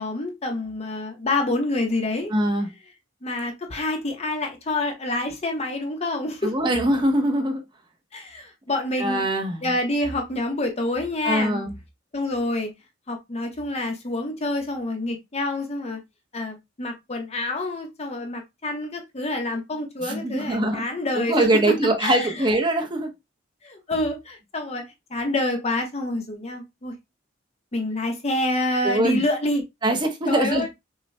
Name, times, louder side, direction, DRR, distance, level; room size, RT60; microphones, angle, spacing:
voice 1, 0.0-2.3 3.2-6.6 8.1-9.2 9.6-11.6 12.1-12.7 13.1-16.0 16.3-22.6 23.6-26.9 27.7-29.6 30.3-30.7, left 1 dB, 30° left, 0.7 m, -27 dB
voice 2, 2.3-2.7 6.4-7.6 9.0-9.7 11.2-11.7 20.0-20.8 21.2-23.1 28.8-29.2 29.8-30.6, right 1 dB, 25° right, 0.8 m, -22 dB
5.5 x 2.2 x 3.2 m
head